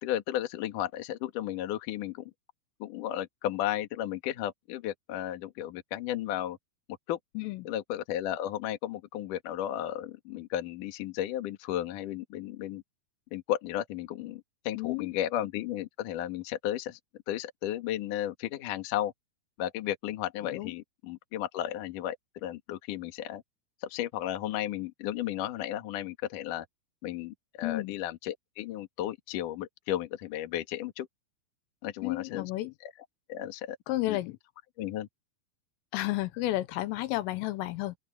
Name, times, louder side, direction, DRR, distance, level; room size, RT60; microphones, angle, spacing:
voice 1, 0.0-2.3 2.8-6.6 7.1-7.2 7.6-12.8 13.3-17.0 17.3-19.1 19.6-23.4 23.8-26.7 27.0-31.1 31.8-32.5 32.8-32.9 33.3-33.8 34.1-34.2 34.8-35.1, left 12 dB, 60° left, 2.3 m, -34 dB
voice 2, 7.4-7.7 14.8-15.1 20.4-20.8 27.6-27.9 32.0-32.7 33.9-34.4 35.9-38.0, left 17 dB, 80° left, 3.4 m, -32 dB
open air
omnidirectional pair, 6.0 m